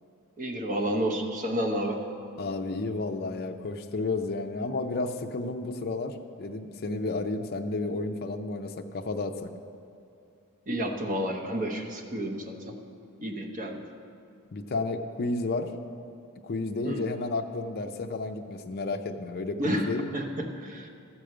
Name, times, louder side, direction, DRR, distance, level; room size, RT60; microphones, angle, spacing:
voice 1, 0.4-2.0 10.7-12.8 13.2-13.8 16.8-17.0 19.6-20.9, equal, 40° right, 2 dB, 1.0 m, -30 dB
voice 2, 2.4-9.5 14.5-15.7 16.4-20.1, left 3 dB, 45° left, 5 dB, 0.5 m, -32 dB
13.5 x 5.0 x 7.8 m, 2.6 s
head